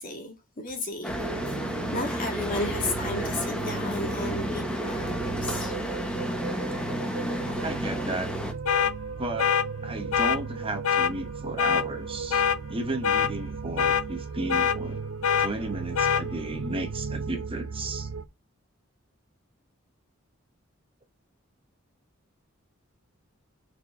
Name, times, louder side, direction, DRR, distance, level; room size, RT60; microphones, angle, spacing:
voice 1, 0.0-5.7, left 2 dB, 40° left, 1.9 m, -34 dB
sound 1, 1.0-8.5, equal, 5° left, 1.2 m, -32 dB
sound 2, 1.1-18.3, right 4 dB, 65° right, 0.6 m, -36 dB
voice 2, 7.6-8.4 9.2-9.6 9.8-12.4 12.7-15.0 15.4-18.1, right 2 dB, 25° right, 1.0 m, -34 dB
sound 3, 8.7-8.9 9.4-9.7 10.1-10.4 10.8-11.1 11.6-11.8 12.3-12.6 13.0-13.3 13.8-14.0 14.5-14.8 15.2-15.5 15.9-16.2, left 8 dB, 75° left, 0.5 m, -23 dB
5.9 x 4.4 x 4.7 m
head